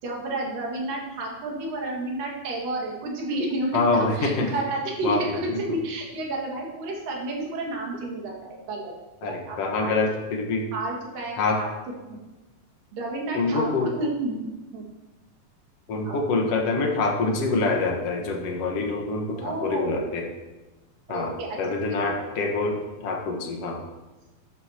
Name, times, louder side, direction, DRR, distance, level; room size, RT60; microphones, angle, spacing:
voice 1, 0.0-8.9 9.2-9.9 10.7-12.2 12.9-14.4 14.7-14.8 16.0-16.2 19.3-20.2 21.1-21.6 21.9-22.3, right 2 dB, 75° right, -1 dB, 3.7 m, -31 dB
voice 2, 3.7-4.5 5.0-5.4 9.2-10.7 11.4-11.6 13.3-13.9 15.9-20.3 21.1-21.3 21.6-23.8, left 3 dB, 55° left, 1 dB, 2.1 m, -25 dB
12.5 x 12.0 x 3.0 m, 1.1 s
omnidirectional pair, 4.0 m